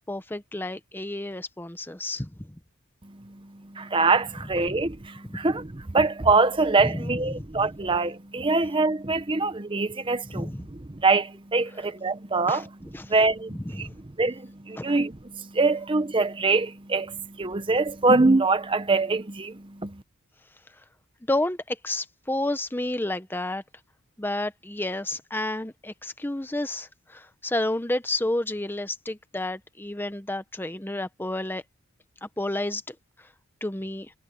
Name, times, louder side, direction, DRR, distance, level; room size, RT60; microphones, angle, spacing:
voice 1, 0.1-2.5 5.2-5.4 6.8-7.4 10.3-10.6 12.5-13.1 13.5-14.0 14.8-15.0 21.3-23.6 24.2-31.6 32.2-33.0 33.6-34.1, left 1 dB, 10° left, 0.8 m, -30 dB
voice 2, 3.7-10.5 10.9-12.7 13.1-13.9 14.2-20.0, right 3 dB, 25° right, 0.8 m, -24 dB
head